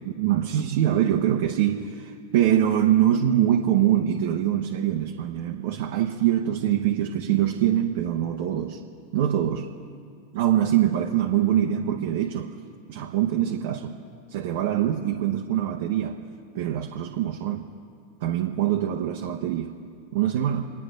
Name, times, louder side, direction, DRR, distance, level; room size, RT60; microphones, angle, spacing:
voice 1, 0.2-8.8 9.1-9.7 10.3-12.5 12.9-13.9 14.3-16.2 16.5-17.7 18.2-19.7 20.1-20.7, right 11 dB, 55° right, 1 dB, 1.1 m, -24 dB
26.5 x 9.9 x 5.2 m, 2.3 s
figure-of-eight pair, 90°, 0 cm